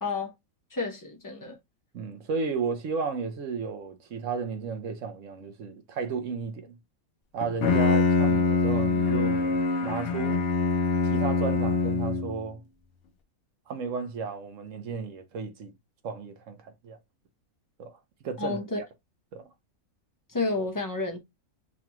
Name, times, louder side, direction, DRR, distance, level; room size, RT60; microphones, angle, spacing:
voice 1, 0.0-0.3 0.7-1.6 18.4-18.8 20.3-21.2, left 3 dB, 25° left, 0.4 m, -30 dB
voice 2, 1.9-6.7 7.3-10.4 11.0-12.6 13.7-15.7 16.0-17.0 17.8-18.0 18.2-18.9 19.3-19.5, right 5 dB, 65° right, 1.0 m, -33 dB
Bowed string instrument, 7.4-12.5, left 4 dB, 55° left, 0.7 m, -24 dB
5.7 x 2.3 x 2.9 m
omnidirectional pair, 1.5 m